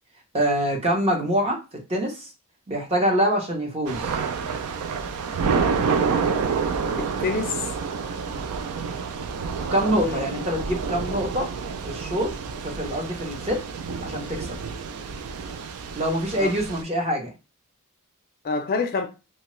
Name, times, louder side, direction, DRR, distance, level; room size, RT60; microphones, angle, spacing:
voice 1, 0.3-1.6 1.9-2.3 2.7-4.1 9.7-11.5 11.8-12.3 12.6-13.7 14.0-14.6 16.0-17.3, equal, 25° right, 0.7 m, -25 dB
Thunder / Rain, 3.9-16.8, right 5 dB, 75° right, 0.3 m, -28 dB
voice 2, 7.0-7.7 10.0-10.4 16.4-16.5 18.4-19.1, left 4 dB, 40° left, 0.4 m, -27 dB
2.8 x 2.2 x 3.0 m
head